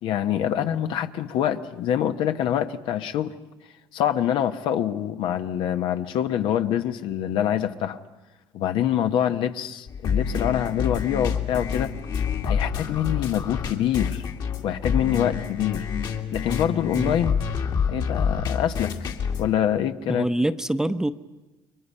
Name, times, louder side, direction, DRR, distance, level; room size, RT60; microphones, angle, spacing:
voice 1, 0.0-3.3 3.9-8.0 8.5-11.9 12.4-14.2 14.6-15.9 16.3-17.3 17.9-18.9 19.4-20.3, left 10 dB, 70° left, 8 dB, 1.0 m, -25 dB
sound 1, 9.9-19.5, left 6 dB, 55° left, 2.3 m, -28 dB
voice 2, 20.1-21.1, right 1 dB, 5° right, 11 dB, 0.8 m, -25 dB
29.5 x 23.0 x 5.5 m, 1.1 s
cardioid pair, 95°, 9 cm